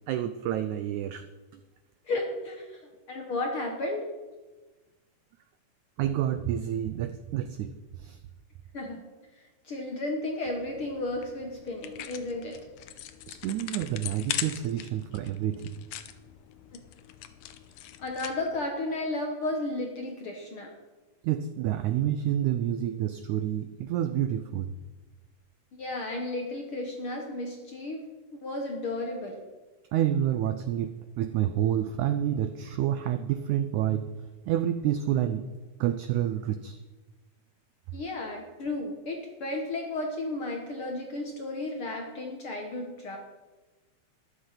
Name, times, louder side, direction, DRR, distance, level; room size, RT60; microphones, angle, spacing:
voice 1, 0.1-1.2 1.5-1.6 6.0-8.2 13.3-15.9 21.2-24.7 29.9-34.1 34.5-35.5 35.8-36.8, right 11 dB, 85° right, 10 dB, 1.7 m, -29 dB
voice 2, 2.0-2.8 3.1-4.1 8.7-9.0 9.6-12.6 18.0-20.7 25.7-28.0 28.4-29.4 37.9-43.2, left 2 dB, 55° left, 1 dB, 1.5 m, -33 dB
sound 1, 10.4-18.7, left 12 dB, 75° left, 2.3 m, -41 dB
13.0 x 11.5 x 5.7 m, 1.2 s
omnidirectional pair, 4.1 m